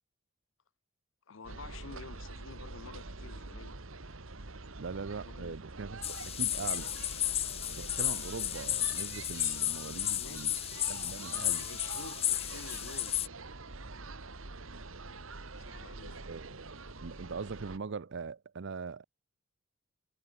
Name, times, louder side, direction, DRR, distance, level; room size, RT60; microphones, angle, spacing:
voice 1, 1.3-3.7 5.2-5.6 9.5-9.6 9.8-10.6 11.3-13.1 15.6-16.2, left 5 dB, 70° left, 0.8 m, -50 dB
sound 1, 1.4-17.8, right 3 dB, 75° right, 2.0 m, -45 dB
voice 2, 4.8-7.0 7.7-10.5 10.9-11.7 16.3-19.0, right 4 dB, 60° right, 0.6 m, -42 dB
sound 2, 6.0-13.3, left 12 dB, 30° left, 0.4 m, -33 dB
head